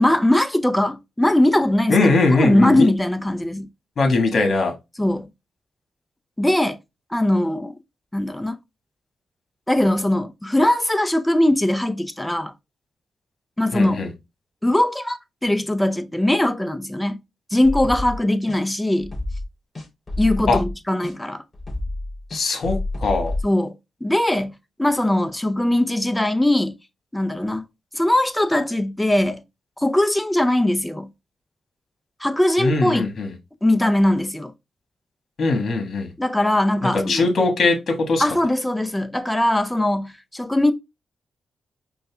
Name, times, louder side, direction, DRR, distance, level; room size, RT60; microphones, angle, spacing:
voice 1, 0.0-2.0 2.3-3.7 5.0-5.3 6.4-6.8 7.1-7.7 8.1-8.6 9.7-12.5 13.6-14.0 14.6-17.2 17.5-19.1 20.2-21.4 23.4-23.7 24.0-24.5 24.8-26.8 27.1-27.6 27.9-29.4 29.8-31.1 32.2-33.1 33.6-34.5 36.2-37.3 38.2-40.7, left 1 dB, 10° left, 0.5 m, -20 dB
voice 2, 1.9-2.9 4.0-4.7 13.7-14.1 20.5-20.6 22.3-23.3 32.6-33.3 35.4-36.1 36.8-38.4, left 3 dB, 55° left, 1.4 m, -20 dB
sound 1, 17.6-18.2 18.5-18.6 19.0-19.4 19.8-20.7 21.0-21.1 21.5-23.4, left 2 dB, 25° left, 2.9 m, -28 dB
5.3 x 2.2 x 3.3 m
cardioid pair, 90°, 0 cm